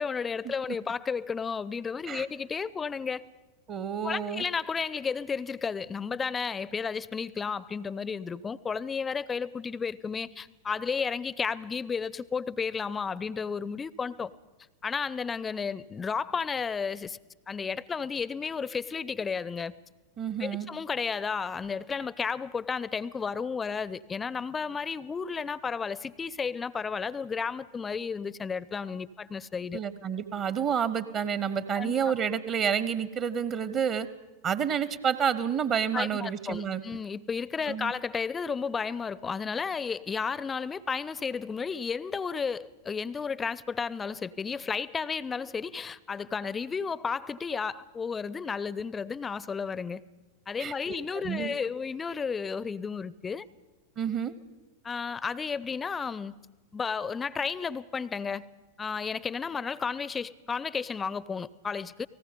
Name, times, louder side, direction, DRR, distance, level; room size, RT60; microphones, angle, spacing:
voice 1, 0.0-3.2 4.0-14.3 14.8-17.2 17.5-19.7 20.4-29.8 31.7-31.9 35.9-50.0 50.5-53.4 54.8-56.3 56.7-58.5 58.8-62.1, left 5 dB, 15° left, 21 dB, 0.6 m, -33 dB
voice 2, 3.7-4.4 20.2-20.7 29.7-34.1 34.4-36.8 37.7-37.9 50.6-50.7 51.2-51.5 54.0-54.3, right 7 dB, 30° right, 16 dB, 1.0 m, -29 dB
30.0 x 19.0 x 5.2 m, 1.2 s
figure-of-eight pair, 90°, 0 cm